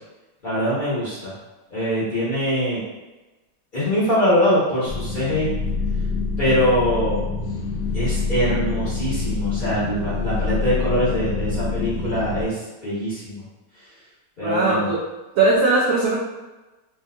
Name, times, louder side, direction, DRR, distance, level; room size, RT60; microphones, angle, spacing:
voice 1, 0.4-1.3 1.7-2.8 3.7-5.5 6.4-7.2 7.9-12.5 12.8-13.4 14.4-14.9, equal, 35° left, -10 dB, 1.0 m, -23 dB
sound 1, 4.9-12.4, left 4 dB, 85° left, 1.3 m, -26 dB
voice 2, 14.4-15.0 15.4-16.2, right 3 dB, 75° right, -4 dB, 0.7 m, -19 dB
3.4 x 2.7 x 2.3 m, 1.1 s
omnidirectional pair, 1.9 m